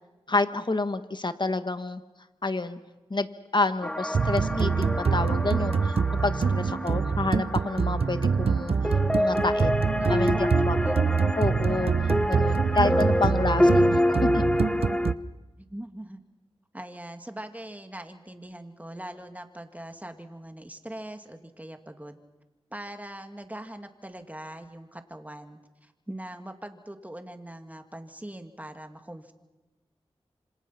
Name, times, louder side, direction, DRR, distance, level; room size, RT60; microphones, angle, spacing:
voice 1, 0.3-2.0 2.4-2.8 3.1-3.3 3.5-6.0 6.2-10.8 11.4-14.4, left 3 dB, 45° left, 10 dB, 1.5 m, -29 dB
sound 1, 3.8-15.1, left 1 dB, 10° left, 0.9 m, -27 dB
sound 2, 4.1-15.1, right 5 dB, 70° right, 0.7 m, -25 dB
voice 2, 6.6-7.0 10.0-11.2 12.1-12.4 13.4-14.0 15.6-16.2 16.7-22.2 22.7-29.3, right 1 dB, 15° right, 6 dB, 2.4 m, -42 dB
27.0 x 26.0 x 5.9 m, 1.1 s
cardioid pair, 45°, 11 cm